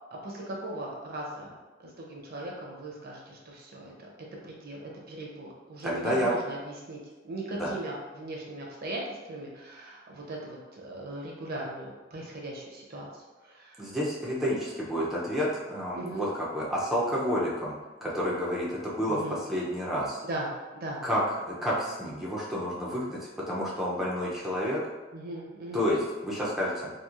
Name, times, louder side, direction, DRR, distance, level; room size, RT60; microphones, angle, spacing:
voice 1, 0.2-1.5 1.8-4.1 4.4-4.8 5.1-7.0 7.2-9.0 9.3-13.1 13.4-13.8 16.0-16.3 19.1-19.4 20.3-20.5 20.7-21.0 25.1-25.8, right 1 dB, 55° right, -2 dB, 0.6 m, -38 dB
voice 2, 5.8-6.3 7.5-7.7 13.8-20.2 21.0-24.8 25.7-26.9, equal, ahead, -7 dB, 0.4 m, -30 dB
2.9 x 2.4 x 2.4 m, 1.2 s
head